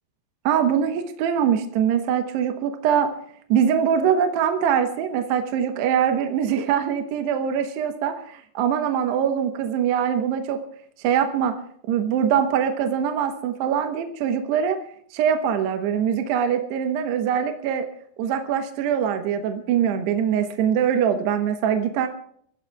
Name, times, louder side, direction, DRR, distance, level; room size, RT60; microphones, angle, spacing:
voice 1, 0.5-3.1 3.5-10.6 11.0-11.6 11.9-14.8 15.1-17.9 18.2-22.1, right 8 dB, 75° right, 6 dB, 2.7 m, -23 dB
29.5 x 15.5 x 2.4 m, 0.63 s
omnidirectional pair, 5.8 m